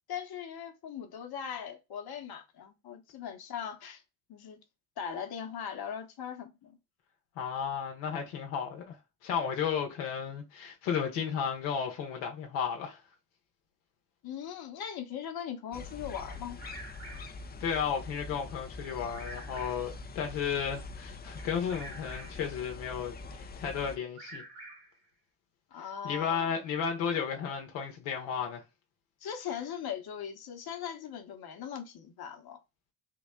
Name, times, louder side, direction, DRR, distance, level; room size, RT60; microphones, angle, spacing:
voice 1, 0.1-4.0 4.3-4.6 5.0-6.8 14.2-16.6 25.7-26.6 29.2-32.6, left 8 dB, 50° left, 1.0 m, -40 dB
voice 2, 7.4-9.0 9.2-13.0 17.6-24.4 26.0-28.6, left 7 dB, 80° left, 0.9 m, -33 dB
sound 1, 15.7-24.0, left 3 dB, 20° left, 0.4 m, -44 dB
Bird vocalization bird call bird song, 16.3-17.5 18.8-20.0 21.4-22.5 23.9-25.0, right 2 dB, 55° right, 2.1 m, -48 dB
3.8 x 2.1 x 3.6 m
hypercardioid pair, 55°, 47 cm